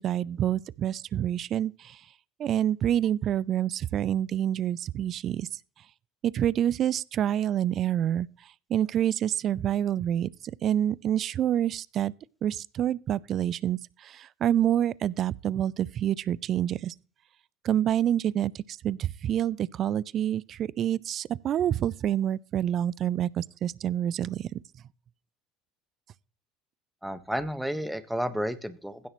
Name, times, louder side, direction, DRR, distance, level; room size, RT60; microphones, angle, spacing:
voice 1, 0.0-2.0 2.4-5.5 6.2-8.3 8.7-10.3 10.6-12.1 12.4-13.8 14.0-16.9 17.6-24.4, right 10 dB, 50° right, 0.4 m, -27 dB
voice 2, 27.0-29.1, equal, 5° right, 1.3 m, -31 dB
16.0 x 6.4 x 3.1 m
hypercardioid pair, 75°, 0 cm